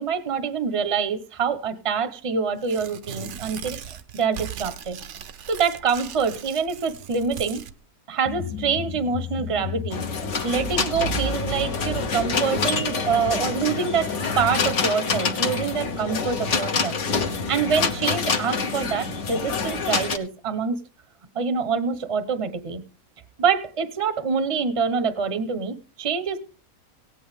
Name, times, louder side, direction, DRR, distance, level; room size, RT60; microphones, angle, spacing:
voice 1, 0.0-5.0 5.5-7.6 8.1-10.0 10.4-20.8 21.3-22.8 23.4-26.4, right 6 dB, 25° right, 12 dB, 0.8 m, -26 dB
Tearing, 2.6-7.7, right 9 dB, 60° right, 0.9 m, -38 dB
sound 1, 8.2-15.1, left 9 dB, 75° left, 1.3 m, -37 dB
sound 2, 9.9-20.2, left 4 dB, 55° left, 1.3 m, -26 dB
17.5 x 8.5 x 3.5 m, 0.35 s
omnidirectional pair, 1.6 m